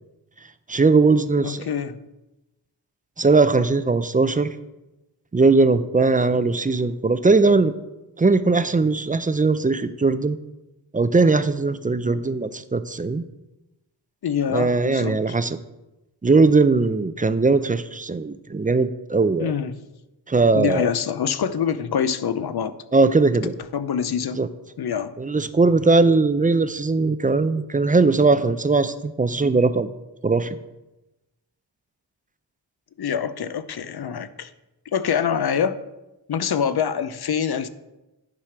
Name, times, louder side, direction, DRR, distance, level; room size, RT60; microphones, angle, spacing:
voice 1, 0.7-1.7 3.2-4.6 5.3-7.7 8.2-10.4 10.9-13.2 14.5-15.6 16.2-19.5 20.3-20.9 22.9-23.5 24.4-24.5 25.2-29.9 30.2-30.6, right 3 dB, 20° right, 12 dB, 0.4 m, -19 dB
voice 2, 1.4-2.0 14.2-15.4 19.4-19.8 20.5-22.8 23.7-24.4 24.8-25.1 33.0-34.5 34.9-35.8 36.3-37.7, left 7 dB, 60° left, 13 dB, 0.7 m, -25 dB
10.5 x 4.9 x 5.9 m, 0.99 s
wide cardioid pair, 105°, 42 cm